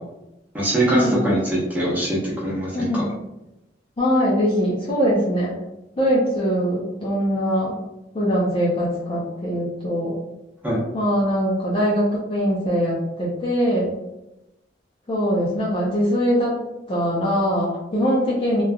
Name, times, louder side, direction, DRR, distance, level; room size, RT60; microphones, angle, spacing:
voice 1, 0.5-3.0 10.6-10.8, right 1 dB, 10° right, -7 dB, 0.9 m, -22 dB
voice 2, 2.7-3.1 4.0-5.5 6.0-7.8 8.1-10.2 10.9-13.9 15.1-16.6 16.9-18.6, equal, 30° left, -5 dB, 0.5 m, -22 dB
2.9 x 2.3 x 2.2 m, 0.94 s
head